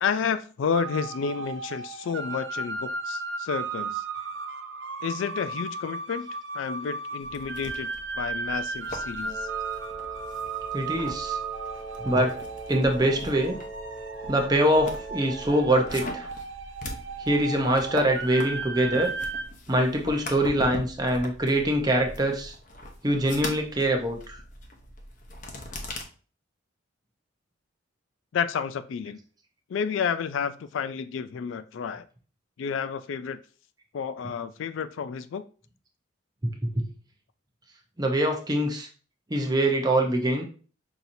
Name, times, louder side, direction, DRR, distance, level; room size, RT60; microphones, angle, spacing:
voice 1, 0.0-4.0 5.0-6.3 6.5-7.9 8.2-9.5 28.3-29.2 29.7-32.0 32.6-33.4 33.9-35.5, left 6 dB, 75° left, 12 dB, 0.3 m, -30 dB
sound 1, 0.7-19.4, right 4 dB, 60° right, 0.5 m, -35 dB
sound 2, 7.2-26.0, left 1 dB, 40° left, 0.8 m, -41 dB
Wind instrument woodwind instrument, 9.2-16.0, right 3 dB, 25° left, 1.5 m, -41 dB
voice 2, 10.7-11.4 12.0-12.3 12.7-13.6 14.3-16.3 17.2-19.1 19.7-22.5 23.0-24.4 36.6-36.8 38.0-38.9 39.3-40.4, right 1 dB, 20° right, 3 dB, 0.7 m, -24 dB
5.6 x 2.8 x 2.6 m, 0.38 s
head